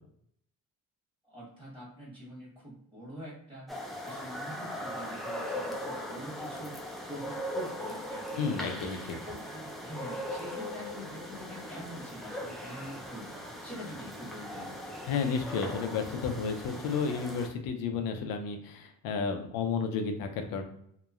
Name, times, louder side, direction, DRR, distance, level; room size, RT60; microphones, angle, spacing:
voice 1, 1.2-3.8 4.0-8.9 9.2-14.8, equal, 15° right, -6 dB, 1.2 m, -45 dB
sound 1, 3.7-17.5, equal, ahead, 0.3 m, -39 dB
voice 2, 8.4-9.1 15.0-20.6, left 5 dB, 85° left, 6 dB, 0.6 m, -32 dB
3.0 x 2.1 x 2.4 m, 0.71 s
cardioid pair, 120°, 34 cm